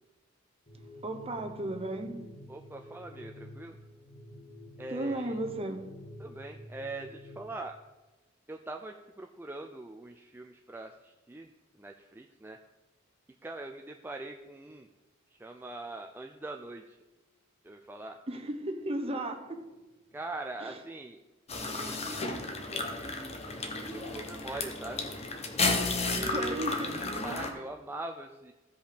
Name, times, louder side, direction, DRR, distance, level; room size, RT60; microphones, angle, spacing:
sound 1, 0.7-7.5, left 1 dB, 50° left, 2.4 m, -49 dB
voice 1, 0.7-2.5 4.9-6.0 18.3-19.8 20.6-20.8 26.2-27.2 27.5-27.6, right 1 dB, 30° right, 6 dB, 1.0 m, -36 dB
voice 2, 2.5-3.8 4.8-5.3 6.2-7.7 8.5-11.5 11.8-12.6 13.4-14.9 15.4-17.0 17.6-18.2 20.1-21.2 21.6-23.4 23.7-25.1 25.9-26.6 27.2-28.5, right 2 dB, 10° right, 3 dB, 0.4 m, -42 dB
sound 2, 21.5-27.5, left 3 dB, 30° left, 1.1 m, -33 dB
15.0 x 5.3 x 5.1 m, 1.1 s
head